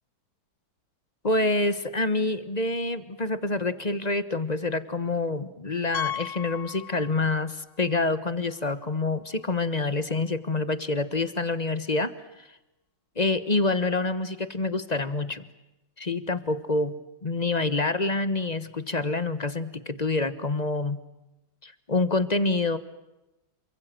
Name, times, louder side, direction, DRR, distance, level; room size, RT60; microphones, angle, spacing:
voice 1, 1.2-12.1 12.4-12.5 13.2-15.4 16.0-21.0 21.6-22.8, left 2 dB, 25° left, 13 dB, 1.2 m, -27 dB
Piano, 5.9-7.5 7.8-8.0 8.6-8.7 8.9-9.0 11.1-11.2, left 10 dB, 55° left, 1.6 m, -35 dB
28.0 x 25.0 x 7.7 m, 0.96 s
omnidirectional pair, 2.2 m